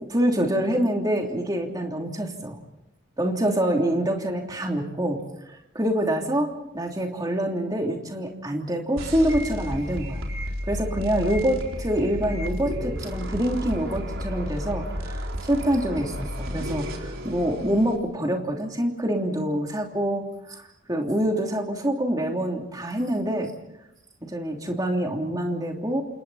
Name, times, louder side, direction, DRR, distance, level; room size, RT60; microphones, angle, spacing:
voice 1, 0.1-2.6 3.2-5.2 5.7-10.2 10.7-20.6 20.9-23.5 24.3-26.0, right 1 dB, 20° right, 1 dB, 3.1 m, -26 dB
sound 1, 9.0-18.0, equal, 90° right, 4.2 m, -32 dB
28.5 x 28.5 x 4.2 m, 0.86 s
head